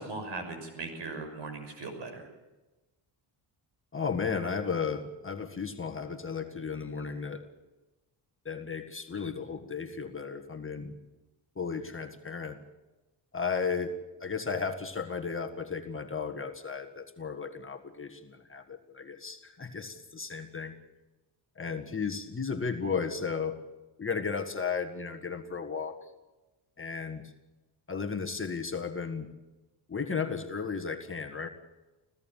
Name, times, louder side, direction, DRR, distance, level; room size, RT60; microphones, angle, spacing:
voice 1, 0.0-2.3, right 3 dB, 60° right, 7 dB, 6.2 m, -39 dB
voice 2, 3.9-7.5 8.5-10.9 11.6-12.6 13.3-20.8 21.6-23.6 24.0-26.0 26.8-27.3 27.9-29.3 29.9-31.5, left 5 dB, 25° left, 6 dB, 1.8 m, -34 dB
25.5 x 16.5 x 7.4 m, 1.1 s
cardioid pair, 80°, 48 cm